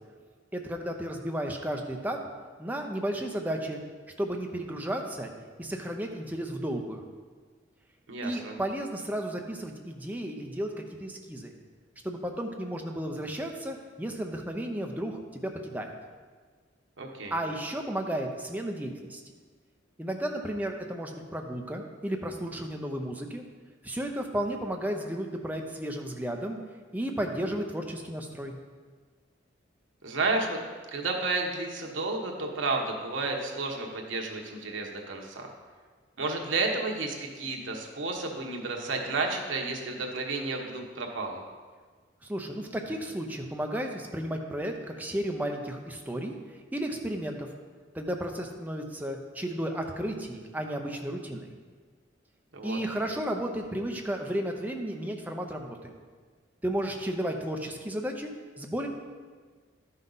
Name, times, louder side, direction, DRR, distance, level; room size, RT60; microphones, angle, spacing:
voice 1, 0.5-2.2 2.6-3.8 4.2-5.3 5.6-7.0 8.2-11.5 12.0-15.9 17.3-19.2 20.0-23.4 23.8-26.6 26.9-28.6 42.2-46.3 46.7-47.5 47.9-51.5 52.6-55.9 56.6-58.3 58.6-58.9, right 1 dB, 10° right, 2 dB, 0.7 m, -33 dB
voice 2, 8.1-8.5 17.0-17.4 30.0-30.6 30.9-35.5 36.2-41.4 52.5-52.8, right 3 dB, 80° right, 1 dB, 1.2 m, -31 dB
12.0 x 5.6 x 4.0 m, 1.5 s
head